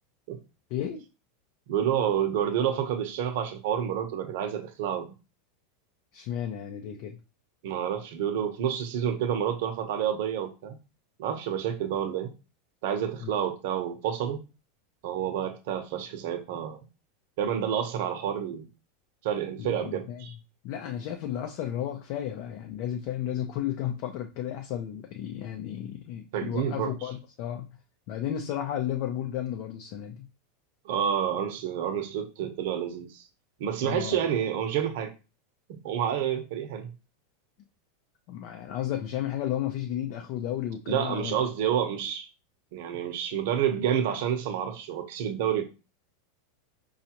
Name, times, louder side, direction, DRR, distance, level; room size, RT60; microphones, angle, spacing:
voice 1, 0.7-1.0 6.1-7.2 13.2-13.3 15.3-15.4 19.6-20.3 20.6-27.7 28.1-30.3 33.8-34.3 38.3-41.4, left 10 dB, 50° left, 0.5 m, -33 dB
voice 2, 1.7-5.1 7.6-10.8 11.2-12.3 12.8-14.4 15.0-16.8 17.4-18.7 19.2-20.3 26.3-26.9 30.8-33.2 33.6-35.1 35.7-36.9 40.9-42.3 42.7-45.6, right 9 dB, 65° right, 0.8 m, -29 dB
5.1 x 2.4 x 2.9 m
supercardioid pair, 145°, 0 cm